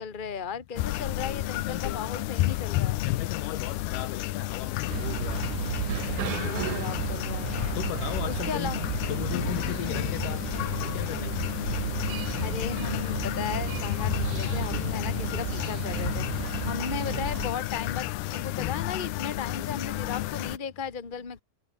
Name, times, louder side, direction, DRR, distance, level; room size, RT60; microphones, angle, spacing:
voice 1, 0.0-3.0 6.4-7.8 8.3-8.8 12.4-21.4, left 6 dB, 20° left, 1.5 m, -36 dB
sound 1, 0.8-20.6, left 16 dB, 85° left, 3.0 m, -31 dB
voice 2, 1.7-2.0 3.0-5.5 6.4-6.9 7.8-8.7 9.1-10.4 10.8-11.4, left 13 dB, 70° left, 2.3 m, -36 dB
sound 2, 4.9-17.5, right 12 dB, 65° right, 2.4 m, -34 dB
omnidirectional pair, 4.4 m